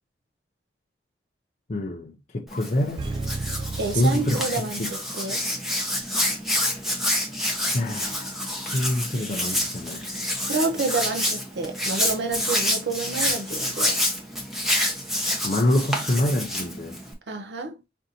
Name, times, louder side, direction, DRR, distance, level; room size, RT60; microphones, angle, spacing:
voice 1, 1.7-3.1 3.9-4.9 7.7-8.4 8.7-10.1 15.4-17.0, left 1 dB, 40° left, 0.5 m, -26 dB
Hands, 2.5-17.1, left 1 dB, ahead, 0.8 m, -28 dB
sound 1, 3.0-5.2 5.5-5.6, right 3 dB, 30° right, 0.3 m, -34 dB
voice 2, 3.7-5.4 10.5-14.0 17.3-17.7, right 3 dB, 75° right, 0.6 m, -29 dB
5.2 x 2.6 x 2.7 m
head